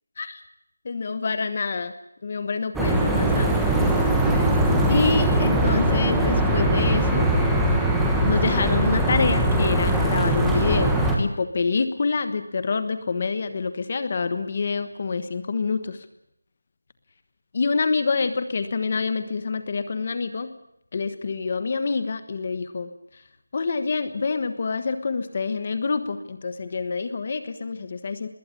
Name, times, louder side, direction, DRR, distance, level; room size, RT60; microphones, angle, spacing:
voice 1, 0.8-1.9 2.2-3.6 4.9-7.3 8.2-16.0 17.5-20.5 20.9-22.9 23.5-28.3, left 4 dB, 25° left, 11 dB, 1.3 m, -26 dB
sound 1, 2.7-11.2, right 1 dB, ahead, 1.2 m, -21 dB
20.5 x 17.5 x 8.5 m, 0.78 s
figure-of-eight pair, 180°, 0 cm